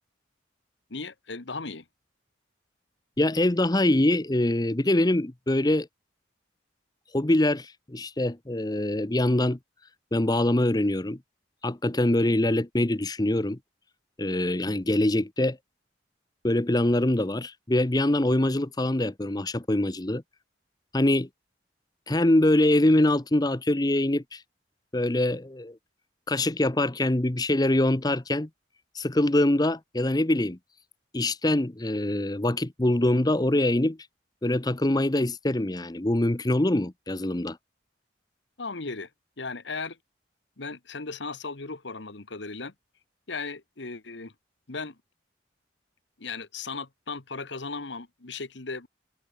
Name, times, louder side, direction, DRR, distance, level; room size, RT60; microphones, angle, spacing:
voice 1, 0.9-1.8 38.6-39.1 39.4-40.0 40.6-42.7 43.3-44.3 44.7-44.9 46.2-48.9, left 4 dB, 70° left, 1.5 m, -36 dB
voice 2, 3.2-5.9 7.1-9.6 10.1-11.2 11.6-13.6 14.2-15.6 16.4-20.2 20.9-21.3 22.1-24.4 24.9-25.8 26.3-28.5 28.9-30.6 31.1-34.0 34.4-37.6, left 1 dB, 20° left, 0.8 m, -24 dB
head